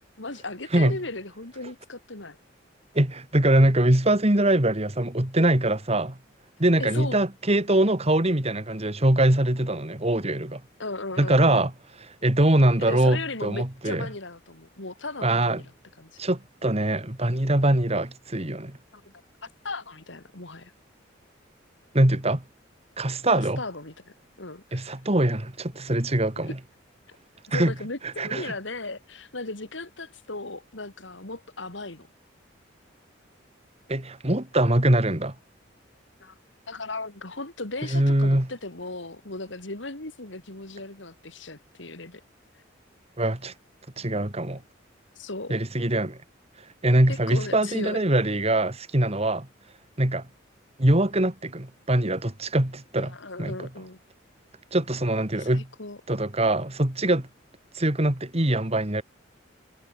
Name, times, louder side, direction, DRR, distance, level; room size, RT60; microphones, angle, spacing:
voice 1, 0.2-2.4 6.8-7.2 10.8-11.7 12.8-15.7 16.0-16.1 18.9-19.1 19.4-20.7 23.3-24.9 27.5-32.1 36.2-36.3 36.7-42.2 45.2-45.5 47.1-48.0 53.0-54.0 55.3-56.0, left 2 dB, 65° left, 3.0 m, -37 dB
voice 2, 2.9-6.2 6.6-10.6 11.2-11.7 12.2-14.1 15.2-15.6 16.2-18.8 21.9-22.4 23.0-23.6 24.7-26.6 27.5-27.7 28.2-28.5 33.9-35.3 37.9-38.5 43.2-43.5 44.0-44.6 45.5-46.2 46.8-49.5 50.0-50.3 50.8-53.6 54.7-55.7 56.1-57.3 57.7-59.0, right 1 dB, 30° right, 2.4 m, -23 dB
head